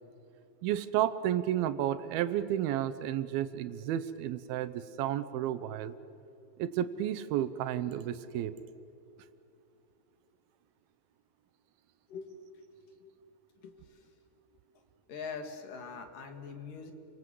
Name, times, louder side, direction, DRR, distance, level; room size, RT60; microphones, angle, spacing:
voice 1, 0.6-5.9 6.6-8.5, right 11 dB, 80° right, 11 dB, 2.6 m, -32 dB
voice 2, 13.6-14.1 15.1-16.9, left 5 dB, 60° left, 5 dB, 3.5 m, -43 dB
29.5 x 25.0 x 7.7 m, 2.9 s
omnidirectional pair, 4.5 m